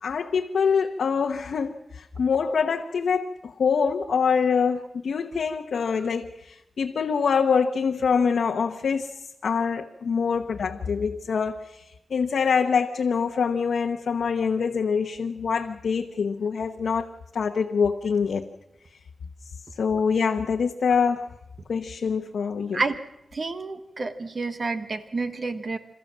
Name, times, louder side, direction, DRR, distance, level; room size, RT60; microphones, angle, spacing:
voice 1, 0.0-9.1 9.4-11.8 12.1-17.1 17.3-18.4 19.8-21.3 21.7-22.8, left 6 dB, 85° left, 2 dB, 1.1 m, -25 dB
voice 2, 23.3-25.8, right 3 dB, 45° right, 9 dB, 1.0 m, -29 dB
28.5 x 14.0 x 7.4 m, 0.86 s
wide cardioid pair, 125°, 0 cm